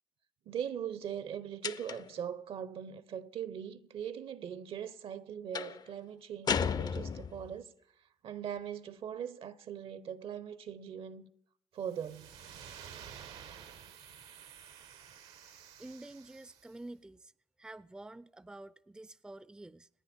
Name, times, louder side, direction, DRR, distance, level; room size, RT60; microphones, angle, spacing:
voice 1, 0.5-7.7 8.2-11.3 11.7-12.3, right 8 dB, 65° right, 1.0 m, -40 dB
sound 1, 1.6-2.2 5.5-5.8 6.5-7.5, left 6 dB, 40° left, 0.5 m, -34 dB
sound 2, 11.8-16.8, right 8 dB, 80° right, 1.4 m, -51 dB
voice 2, 15.8-17.3 17.6-19.9, right 2 dB, 10° right, 0.5 m, -49 dB
27.5 x 9.7 x 4.5 m
cardioid pair, 80°, 10 cm